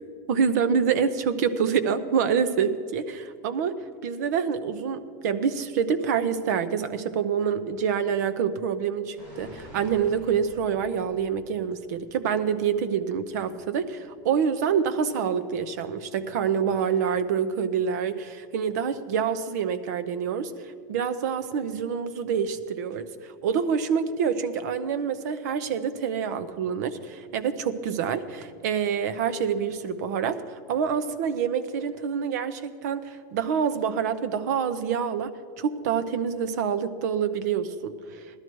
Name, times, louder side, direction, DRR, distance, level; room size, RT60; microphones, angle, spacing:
voice 1, 0.3-3.8 4.0-35.3 35.6-38.2, right 7 dB, 60° right, 12 dB, 0.8 m, -27 dB
sound 1, 9.2-12.1 12.4-12.5, equal, 40° right, 4.2 m, -47 dB
16.0 x 12.5 x 4.6 m, 2.2 s
supercardioid pair, 180°, 11 cm